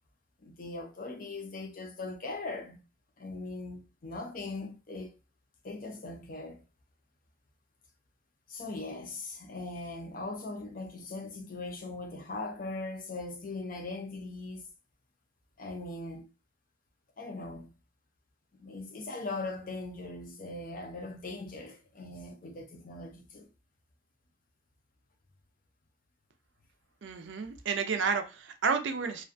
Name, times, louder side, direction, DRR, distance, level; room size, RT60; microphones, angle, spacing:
voice 1, 0.4-2.8 3.2-5.1 5.6-6.6 8.5-14.6 15.6-16.3 17.2-17.7 18.5-23.5, left 2 dB, 45° left, 0.5 m, -40 dB
voice 2, 27.0-29.2, right 5 dB, 60° right, 0.4 m, -31 dB
2.4 x 2.2 x 2.5 m
head